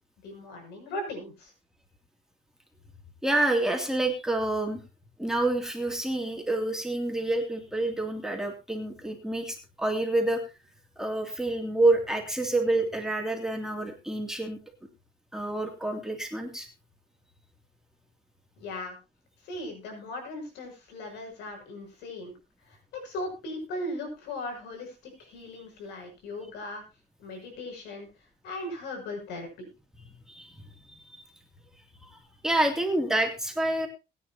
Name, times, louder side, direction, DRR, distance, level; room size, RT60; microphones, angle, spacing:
voice 1, 0.2-1.5 18.6-19.0 19.4-22.3 22.7-26.8 27.2-28.1 28.4-29.7, left 1 dB, 85° left, 3 dB, 6.9 m, -38 dB
voice 2, 3.2-4.8 5.2-10.4 11.0-14.6 15.3-16.7 30.3-30.5 30.9-31.0 32.0-32.1 32.4-33.9, right 2 dB, 5° right, 2 dB, 2.8 m, -28 dB
22.0 x 9.7 x 2.9 m, 0.28 s
cardioid pair, 110°, 17 cm